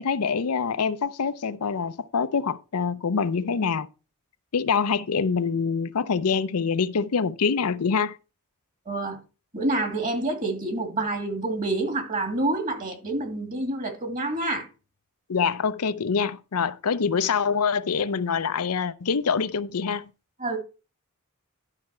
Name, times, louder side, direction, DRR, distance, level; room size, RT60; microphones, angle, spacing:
voice 1, 0.0-3.9 4.5-8.2 15.3-20.1, left 5 dB, 85° left, 0.6 m, -25 dB
voice 2, 8.9-9.2 9.5-14.7 20.4-20.6, right 2 dB, 35° right, 2.7 m, -27 dB
11.5 x 5.8 x 4.4 m
head